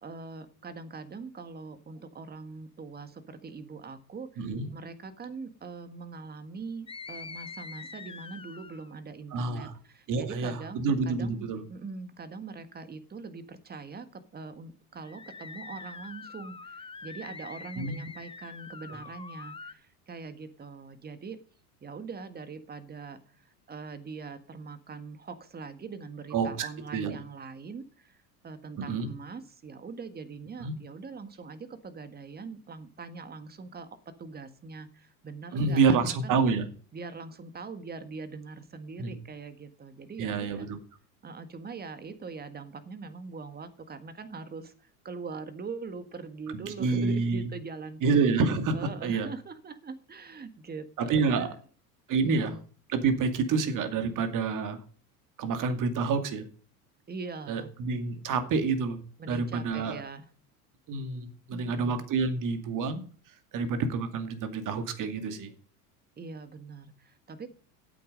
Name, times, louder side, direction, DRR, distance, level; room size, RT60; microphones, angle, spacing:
voice 1, 0.0-21.4 21.8-36.4 36.9-40.7 41.2-48.3 48.7-51.5 52.2-52.6 57.1-57.7 59.2-60.3 61.5-62.1 66.2-67.5, right 4 dB, 20° right, 11 dB, 1.6 m, -42 dB
voice 2, 4.4-4.7 9.3-9.7 10.1-10.6 10.8-11.6 17.8-17.9 26.3-27.2 28.8-29.1 30.6-30.7 35.5-36.7 39.0-39.2 40.2-40.8 46.5-47.5 48.0-49.3 51.0-51.5 52.1-52.5 52.9-54.8 55.4-56.4 57.5-59.0 59.3-60.0 60.9-63.0 63.5-65.5, right 4 dB, 40° right, 8 dB, 2.4 m, -28 dB
sound 1, 6.9-8.9 15.0-19.7, left 4 dB, 10° left, 0.8 m, -44 dB
12.0 x 8.6 x 5.3 m, 0.43 s
hypercardioid pair, 95°, 46 cm